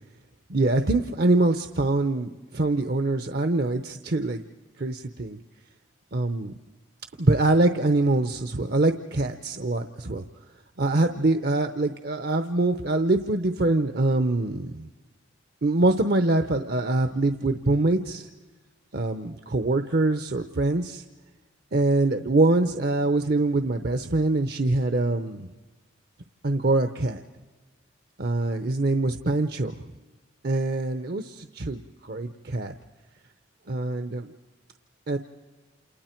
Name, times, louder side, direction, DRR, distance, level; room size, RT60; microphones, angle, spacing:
voice 1, 0.5-4.4 4.8-5.4 6.1-6.5 7.2-10.2 10.8-14.9 15.6-18.3 18.9-21.0 21.7-25.5 26.4-27.2 28.2-29.7 30.4-32.7 33.7-34.3 35.1-35.2, right 2 dB, 55° right, 8 dB, 0.7 m, -24 dB
28.5 x 28.5 x 4.5 m, 1.2 s
head